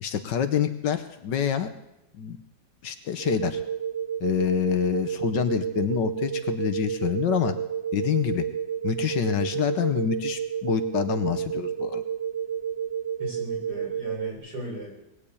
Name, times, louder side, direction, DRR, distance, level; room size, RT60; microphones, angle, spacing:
voice 1, 0.0-1.7 2.1-2.4 2.8-3.6 4.2-7.5 7.9-8.5 8.8-12.0, left 9 dB, 70° left, 9 dB, 1.5 m, -26 dB
sound 1, 3.2-14.3, right 8 dB, 80° right, 1.9 m, -31 dB
voice 2, 13.2-14.9, equal, 55° right, -3 dB, 7.0 m, -37 dB
20.0 x 7.3 x 8.5 m, 0.87 s
omnidirectional pair, 2.0 m